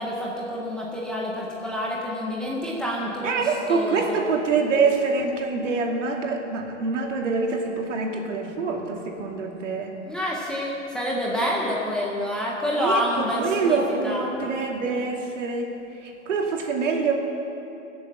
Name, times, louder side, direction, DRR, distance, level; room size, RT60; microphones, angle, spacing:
voice 1, 0.0-3.4 3.7-4.2 10.1-13.8 14.0-14.2, equal, ahead, -5 dB, 0.5 m, -27 dB
voice 2, 3.2-10.0 12.8-15.7 16.0-17.1, right 4 dB, 75° right, 1 dB, 2.6 m, -25 dB
20.5 x 7.6 x 7.3 m, 2.9 s
hypercardioid pair, 165°, 37 cm